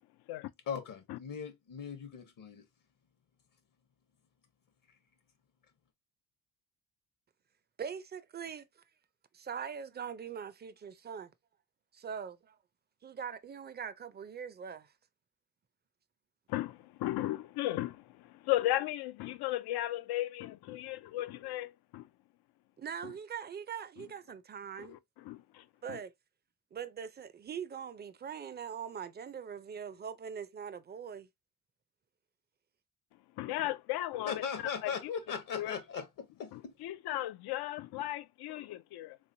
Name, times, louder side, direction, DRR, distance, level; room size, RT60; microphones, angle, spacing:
voice 1, 0.7-2.6 34.3-36.7, left 6 dB, 60° left, 0.9 m, -39 dB
voice 2, 7.8-8.7 9.3-11.3 11.9-12.6 13.0-14.9 22.8-25.0 25.8-26.1 26.7-31.3, right 7 dB, 25° right, 0.4 m, -42 dB
voice 3, 16.5-22.1 23.0-23.1 24.0-24.1 24.8-26.0 33.4-34.4 34.8-34.9 35.5-35.7 36.5-39.2, left 15 dB, 80° left, 0.5 m, -36 dB
3.6 x 3.1 x 2.6 m
cardioid pair, 120°, 38 cm